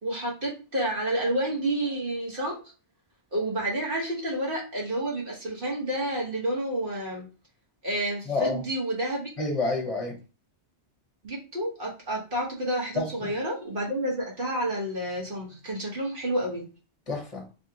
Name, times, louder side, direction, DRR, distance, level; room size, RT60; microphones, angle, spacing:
voice 1, 0.0-2.6 3.3-7.3 7.8-9.3 11.2-16.6, right 1 dB, 55° right, 1.5 m, -29 dB
voice 2, 8.2-8.6 9.4-10.2 12.9-13.3 17.1-17.5, left 3 dB, 35° left, 1.1 m, -29 dB
3.5 x 3.3 x 2.8 m
omnidirectional pair, 1.1 m